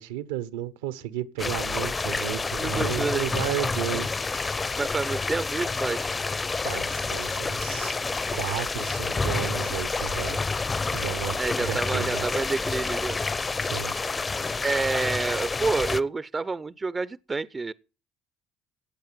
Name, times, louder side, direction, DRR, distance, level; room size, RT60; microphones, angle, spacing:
voice 1, 0.0-4.1 6.6-8.0 8.3-10.4 10.9-12.4 13.6-13.9, right 13 dB, 80° right, 1.0 m, -33 dB
sound 1, 1.4-16.0, left 3 dB, 25° left, 0.8 m, -29 dB
voice 2, 2.6-3.3 4.8-6.1 11.4-13.2 14.6-17.7, right 3 dB, 25° right, 0.6 m, -28 dB
15.5 x 8.7 x 5.7 m
hypercardioid pair, 60°, 0 cm